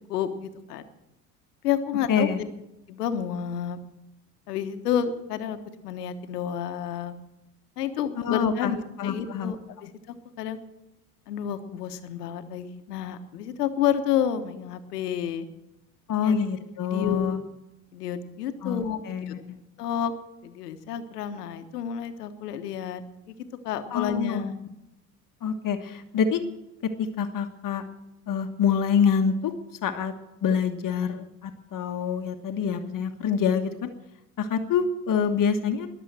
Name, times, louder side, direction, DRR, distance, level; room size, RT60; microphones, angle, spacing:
voice 1, 0.1-0.9 1.6-2.3 2.9-3.8 4.5-7.2 7.8-9.6 10.4-10.6 11.3-15.5 16.2-16.4 16.9-17.4 17.9-19.3 19.8-20.1 20.4-23.4 23.6-24.5, left 9 dB, 85° left, 9 dB, 1.3 m, -30 dB
voice 2, 2.1-2.4 8.2-8.7 9.0-9.5 16.1-17.4 18.6-19.4 23.9-24.4 25.4-26.4 27.0-27.8 28.3-29.5 29.8-30.1 30.4-33.8 34.4-35.9, left 7 dB, 45° left, 6 dB, 1.5 m, -26 dB
21.0 x 7.5 x 7.5 m, 0.91 s
hypercardioid pair, 70°, 46 cm